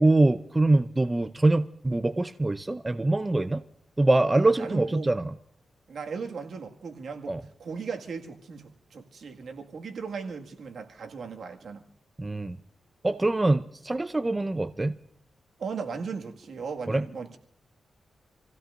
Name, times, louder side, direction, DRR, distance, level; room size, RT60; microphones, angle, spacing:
voice 1, 0.0-3.6 4.0-5.3 7.3-7.4 12.2-12.6 13.0-15.0 16.9-17.0, right 2 dB, 20° right, 0.5 m, -24 dB
voice 2, 4.4-5.1 5.9-7.3 7.6-11.9 15.6-17.4, right 5 dB, 70° right, 1.9 m, -37 dB
28.0 x 16.0 x 2.6 m
cardioid pair, 100°, 0 cm